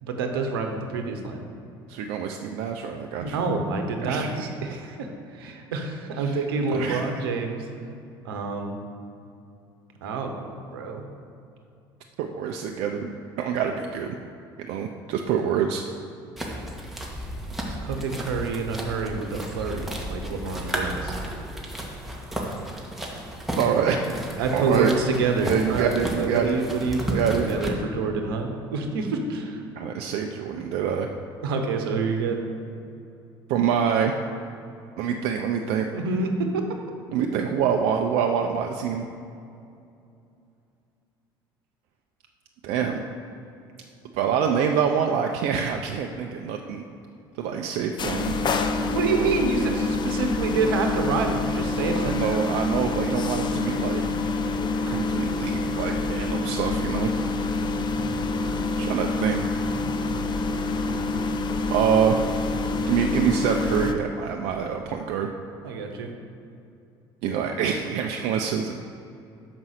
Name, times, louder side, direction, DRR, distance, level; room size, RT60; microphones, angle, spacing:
voice 1, 0.0-1.4 3.2-5.1 5.3-7.7 8.2-8.8 10.0-11.0 17.7-21.1 24.4-29.6 31.4-32.4 35.9-36.6 48.9-52.2 65.6-66.1, right 4 dB, 85° right, 4 dB, 0.9 m, -27 dB
voice 2, 1.9-3.4 4.0-4.5 6.2-6.4 6.7-7.1 12.2-14.2 14.6-15.8 23.6-24.9 25.4-26.6 27.1-27.5 29.8-31.1 33.5-34.2 35.0-35.9 37.1-39.1 42.6-43.0 44.1-46.8 47.4-48.3 51.9-54.0 54.9-57.1 58.8-59.4 61.7-62.2 62.9-65.3 67.2-68.8, right 7 dB, 65° right, 3 dB, 0.5 m, -26 dB
sound 1, 16.4-27.7, right 1 dB, ahead, 1.6 m, -33 dB
sound 2, 48.0-63.9, left 3 dB, 40° left, 0.7 m, -27 dB
6.0 x 5.5 x 6.5 m, 2.6 s
hypercardioid pair, 70°, 12 cm